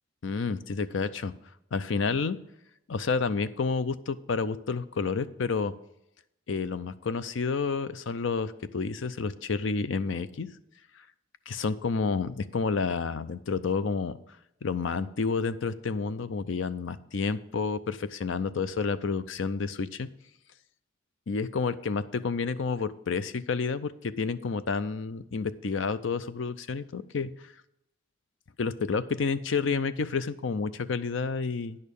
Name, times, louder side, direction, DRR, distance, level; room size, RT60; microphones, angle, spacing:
voice 1, 0.2-1.3 1.7-2.4 2.9-5.7 6.5-10.5 11.5-14.2 14.6-20.1 21.3-27.3 28.6-31.8, left 4 dB, 70° left, 14 dB, 0.5 m, -30 dB
9.8 x 6.6 x 5.3 m, 0.84 s
head